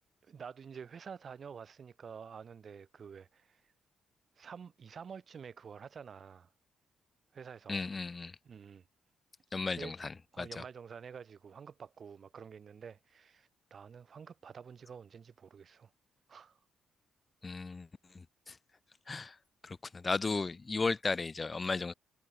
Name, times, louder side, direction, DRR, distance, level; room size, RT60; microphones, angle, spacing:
voice 1, 0.2-3.6 4.4-6.5 7.3-7.9 8.5-8.8 9.7-9.9 10.3-15.9 16.3-16.6, right 6 dB, 45° right, 3.6 m, -49 dB
voice 2, 7.7-8.4 9.5-10.6 17.4-17.9 18.1-18.6 19.1-19.4 19.6-21.9, left 4 dB, 30° left, 2.1 m, -35 dB
cardioid pair, 90°, 0 cm